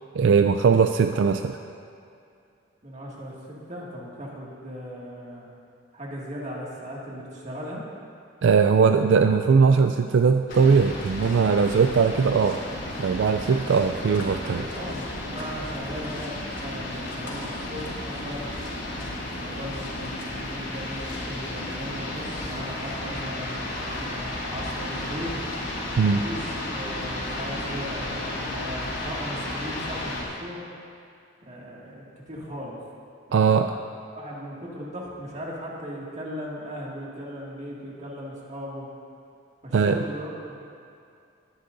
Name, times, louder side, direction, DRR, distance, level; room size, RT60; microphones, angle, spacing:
voice 1, 0.1-1.6 8.4-12.6 13.0-14.6 26.0-26.2 33.3-33.7 39.7-40.0, right 5 dB, 75° right, 6 dB, 0.4 m, -20 dB
voice 2, 2.8-5.5 5.9-7.9 14.4-18.5 19.3-25.4 26.1-30.7 31.4-32.8 33.3-33.9 34.1-38.9 39.6-40.6, equal, 40° right, -4 dB, 2.1 m, -37 dB
sound 1, 10.5-30.2, left 1 dB, 90° left, 3.1 m, -33 dB
21.5 x 10.0 x 2.6 m, 2.5 s
head